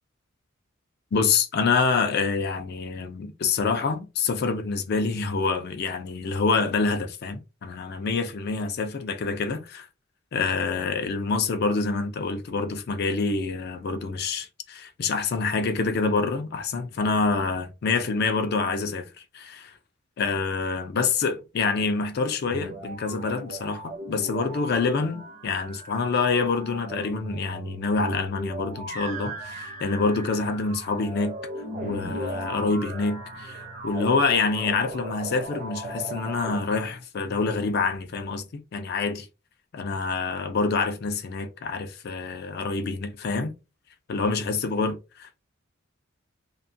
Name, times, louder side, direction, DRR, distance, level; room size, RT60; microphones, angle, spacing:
voice 1, 1.1-9.9 10.3-19.8 20.2-31.4 31.8-39.3 39.7-43.5 44.1-45.0, left 4 dB, 50° left, 0.4 m, -26 dB
sound 1, 22.5-36.6, right 2 dB, 35° right, 0.7 m, -37 dB
2.8 x 2.3 x 2.6 m
head